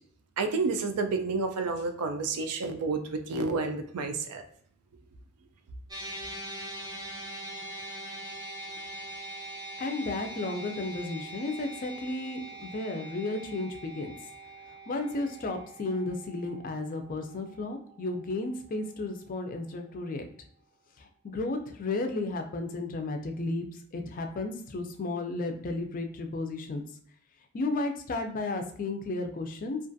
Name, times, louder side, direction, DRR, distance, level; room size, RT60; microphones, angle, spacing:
voice 1, 0.4-4.4, right 3 dB, 90° right, 7 dB, 0.4 m, -30 dB
sound 1, 5.9-18.3, right 1 dB, 15° right, 0.5 m, -43 dB
voice 2, 9.8-14.1 14.9-20.3 21.0-26.8 27.5-29.8, left 2 dB, 35° left, 5 dB, 0.3 m, -33 dB
2.4 x 2.3 x 2.5 m, 0.62 s
head